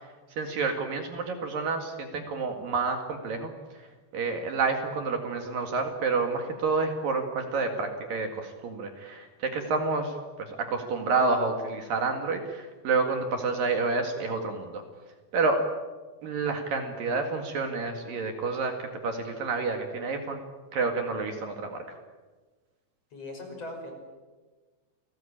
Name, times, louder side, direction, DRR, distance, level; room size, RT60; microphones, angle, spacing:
voice 1, 0.4-3.5 3.8-3.9 4.1-14.8 15.3-15.6 16.2-18.7 19.0-20.4 20.7-22.0, right 4 dB, 60° right, 4 dB, 3.4 m, -29 dB
voice 2, 23.1-23.9, left 2 dB, 35° left, 3 dB, 6.3 m, -39 dB
29.5 x 20.5 x 8.8 m, 1.3 s
omnidirectional pair, 5.0 m